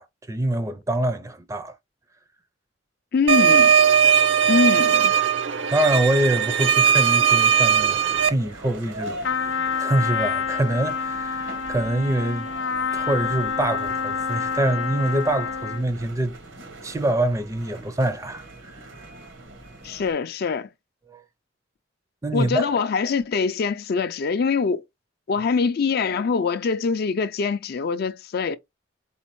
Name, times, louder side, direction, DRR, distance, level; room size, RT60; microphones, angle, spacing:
voice 1, 0.0-1.7 5.7-12.5 12.9-16.4 16.8-18.8 21.1-21.2 22.2-22.7, right 1 dB, 15° right, 0.4 m, -25 dB
voice 2, 3.1-3.8 4.5-5.1 19.8-20.7 22.3-24.8 25.3-28.6, left 5 dB, 55° left, 0.4 m, -23 dB
sound 1, 3.3-8.3, right 8 dB, 75° right, 0.6 m, -18 dB
sound 2, 6.7-20.1, right 1 dB, 90° right, 1.5 m, -42 dB
Trumpet, 9.2-15.9, left 6 dB, 90° left, 0.7 m, -28 dB
4.2 x 4.2 x 3.0 m
head